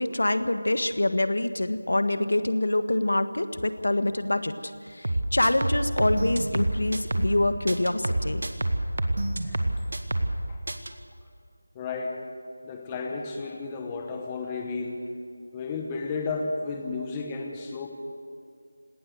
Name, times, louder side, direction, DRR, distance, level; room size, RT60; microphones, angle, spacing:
voice 1, 0.0-8.5, left 1 dB, 70° left, 10 dB, 1.5 m, -26 dB
sound 1, 5.0-7.4 7.7-10.4 10.7-10.9, right 1 dB, 55° right, 1.8 m, -27 dB
voice 2, 11.7-12.2 12.6-15.1 15.5-17.9, left 4 dB, 10° left, 3 dB, 1.0 m, -33 dB
19.0 x 18.5 x 8.0 m, 2.3 s
figure-of-eight pair, 180°, 0 cm